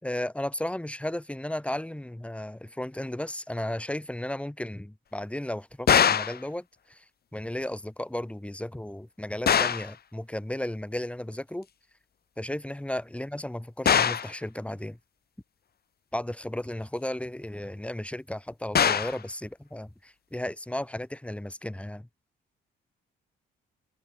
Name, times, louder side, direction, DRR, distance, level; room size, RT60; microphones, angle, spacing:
voice 1, 0.0-7.0 7.3-11.7 12.4-15.0 16.1-22.1, left 1 dB, 5° left, 5.9 m, -34 dB
sound 1, 5.9-6.4 9.5-9.9 13.9-14.3 18.7-19.2, left 8 dB, 50° left, 2.4 m, -22 dB
cardioid pair, 90°, 20 cm